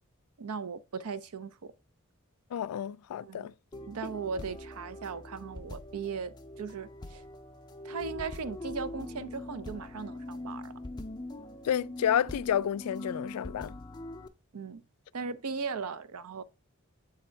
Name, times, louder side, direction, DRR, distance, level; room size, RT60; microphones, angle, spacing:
voice 1, 0.4-1.7 3.2-3.5 3.9-7.2 7.8-10.8 14.5-14.8 15.1-16.4, right 5 dB, 85° right, 0.5 m, -38 dB
voice 2, 2.5-3.5 4.0-4.1 11.6-13.8, left 9 dB, 90° left, 0.3 m, -30 dB
sound 1, 3.7-14.3, left 1 dB, 20° left, 0.4 m, -43 dB
7.7 x 3.5 x 4.4 m
head